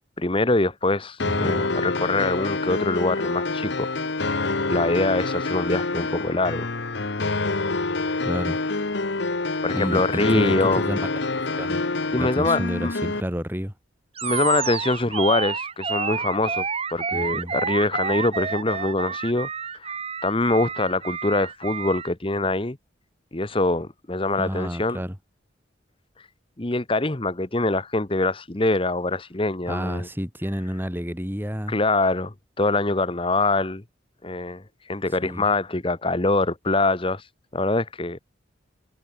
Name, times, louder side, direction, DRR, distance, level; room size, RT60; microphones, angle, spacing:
voice 1, 0.2-3.9 4.2-4.4 4.7-6.7 9.6-10.9 12.1-12.9 14.2-19.5 19.7-19.9 20.2-22.8 23.3-25.0 26.6-30.1 31.7-33.8 34.2-37.2 37.5-38.2, left 2 dB, 25° left, 1.1 m, -24 dB
sound 1, 1.2-13.2, left 3 dB, 65° left, 1.2 m, -26 dB
voice 2, 1.2-1.6 8.2-8.6 9.7-11.0 11.6-11.8 12.1-13.7 17.1-17.5 24.4-25.2 29.7-31.8 35.2-35.5, equal, 10° right, 7.5 m, -30 dB
Animal, 14.2-22.1, right 6 dB, 30° right, 1.0 m, -29 dB
head